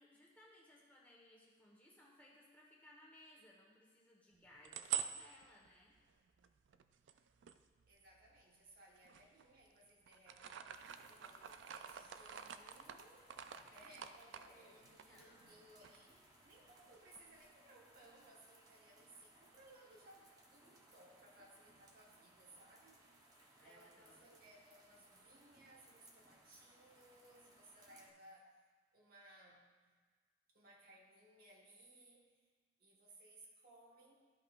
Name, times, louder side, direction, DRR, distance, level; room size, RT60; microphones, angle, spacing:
voice 1, 0.0-5.9 13.5-15.7 23.6-24.3, left 1 dB, 10° left, -4 dB, 1.1 m, -64 dB
sound 1, 4.3-8.4 9.0-9.8 10.1-15.6 15.8-16.0 16.3-17.5, right 9 dB, 90° right, 0.4 m, -47 dB
voice 2, 7.9-10.7 11.0-13.3 13.7-23.0 23.5-28.6 28.9-30.0 30.5-32.5 32.8-34.2, right 1 dB, 55° right, -3 dB, 1.4 m, -63 dB
sound 2, 10.7-28.1, right 1 dB, 20° right, 0.9 m, -66 dB
13.0 x 5.3 x 2.4 m, 1.5 s
head